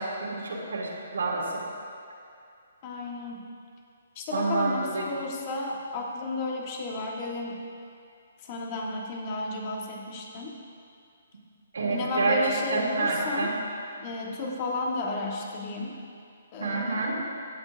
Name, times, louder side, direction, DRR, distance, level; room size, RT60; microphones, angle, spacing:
voice 1, 0.0-1.5 4.3-5.1 11.7-12.4 12.7-13.5 16.6-17.2, right 3 dB, 90° right, -4 dB, 2.2 m, -28 dB
voice 2, 2.8-3.5 4.1-7.6 8.4-10.6 11.9-13.5 14.0-15.9 16.5-17.2, left 2 dB, 30° left, 0 dB, 1.3 m, -33 dB
15.5 x 9.1 x 2.6 m, 2.4 s
hypercardioid pair, 160°, 0 cm